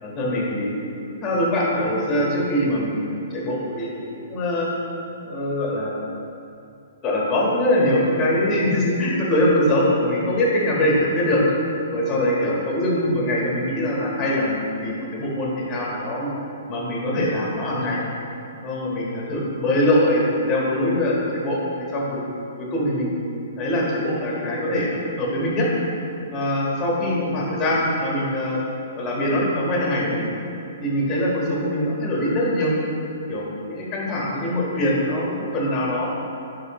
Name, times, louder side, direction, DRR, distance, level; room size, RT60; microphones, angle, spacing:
voice 1, 0.0-4.7 5.2-6.0 7.0-11.4 11.9-16.3 16.7-18.0 18.6-22.2 22.7-23.2 23.6-25.7 26.3-28.6 29.0-30.2 30.8-32.7 33.3-36.1, left 1 dB, 25° left, -4 dB, 1.5 m, -23 dB
9.4 x 3.6 x 3.1 m, 2.6 s
figure-of-eight pair, 120°, 0 cm